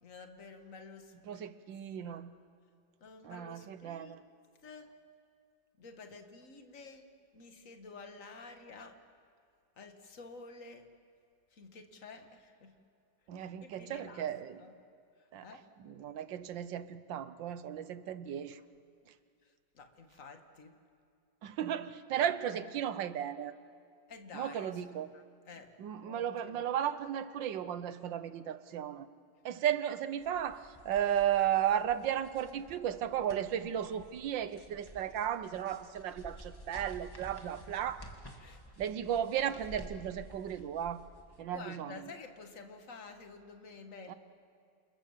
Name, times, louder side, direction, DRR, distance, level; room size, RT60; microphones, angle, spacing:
voice 1, 0.0-1.4 2.0-2.2 3.0-4.2 4.6-4.9 5.8-7.1 7.3-9.0 9.8-10.9 11.5-12.8 13.4-14.3 14.6-14.7 15.4-15.6 19.8-20.7 22.1-22.2 24.1-25.7 26.0-26.7 38.4-38.6 41.5-44.1, left 4 dB, 45° left, 6 dB, 2.1 m, -50 dB
voice 2, 1.3-2.3 3.2-4.2 13.3-14.6 15.3-15.5 15.8-18.6 21.4-23.5 24.3-25.1 25.8-29.1 29.5-38.0 38.8-41.0 41.4-41.9 44.1-44.2, right 10 dB, 85° right, 13 dB, 1.6 m, -35 dB
sound 1, 30.2-41.4, equal, 10° left, 2.2 m, -53 dB
28.5 x 27.5 x 7.4 m, 2.3 s
omnidirectional pair, 2.0 m